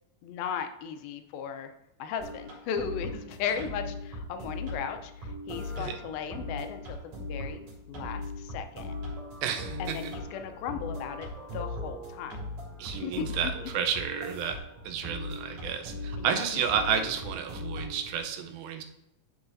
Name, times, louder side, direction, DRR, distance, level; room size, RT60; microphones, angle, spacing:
voice 1, 0.2-1.7 2.0-8.9 9.8-12.4 12.9-13.7 16.2-16.6, left 7 dB, 85° left, 7 dB, 2.5 m, -36 dB
sound 1, 2.2-18.3, left 2 dB, 55° right, 3.8 m, -39 dB
voice 2, 9.4-10.1 12.8-14.6 14.9-18.8, right 7 dB, 85° right, 5 dB, 2.5 m, -31 dB
12.0 x 4.8 x 2.6 m, 0.85 s
omnidirectional pair, 4.2 m